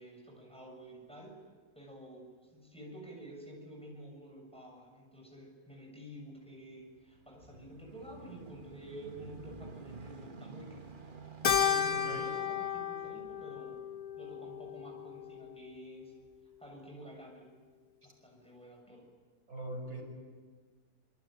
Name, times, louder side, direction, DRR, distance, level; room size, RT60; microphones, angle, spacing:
voice 1, 0.0-1.4 1.7-10.9 11.6-13.8 14.2-16.1 16.6-17.5 18.0-19.1, right 1 dB, 5° left, 0 dB, 7.3 m, -50 dB
sound 1, 6.8-15.6 16.2-16.3, right 4 dB, 35° right, 1.5 m, -51 dB
Keyboard (musical), 11.4-16.0, left 8 dB, 75° left, 1.6 m, -34 dB
voice 2, 11.9-12.3 19.5-20.0, right 1 dB, 75° right, 1 dB, 6.7 m, -41 dB
27.0 x 24.5 x 9.1 m, 1.5 s
omnidirectional pair, 1.5 m